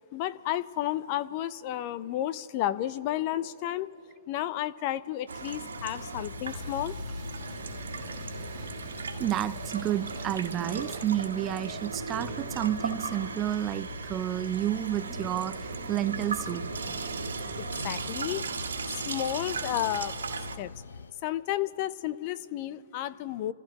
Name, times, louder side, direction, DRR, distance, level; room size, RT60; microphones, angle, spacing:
voice 1, 0.1-3.9 4.3-7.0 17.8-18.4 18.9-20.1 20.6-20.7 21.2-23.5, left 13 dB, 40° left, 0.6 m, -32 dB
Water tap faucet / Sink (filling or washing), 5.3-20.6, right 4 dB, 75° right, 1.7 m, -37 dB
sound 1, 5.7-21.1, left 5 dB, 75° left, 0.6 m, -45 dB
sound 2, 6.5-16.1, right 3 dB, 5° right, 1.8 m, -54 dB
voice 2, 9.2-16.7, right 12 dB, 25° right, 0.4 m, -30 dB
30.0 x 15.0 x 3.0 m
hypercardioid pair, 130°, 0 cm